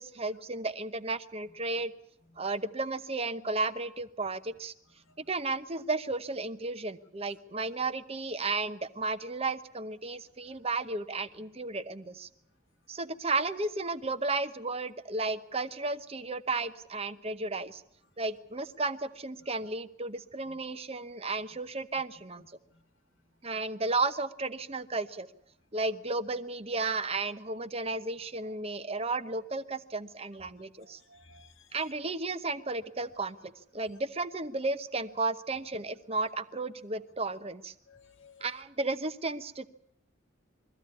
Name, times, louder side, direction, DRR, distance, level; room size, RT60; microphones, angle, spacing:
voice 1, 0.0-1.9 2.4-4.7 5.2-12.3 12.9-17.8 18.2-22.4 23.4-25.3 25.7-31.0 31.7-37.7 38.4-39.7, right 3 dB, 30° right, 11 dB, 0.9 m, -33 dB
voice 2, 30.8-31.8 37.9-38.5, left 3 dB, 85° left, 7 dB, 1.7 m, -57 dB
23.0 x 15.0 x 9.5 m, 0.73 s
head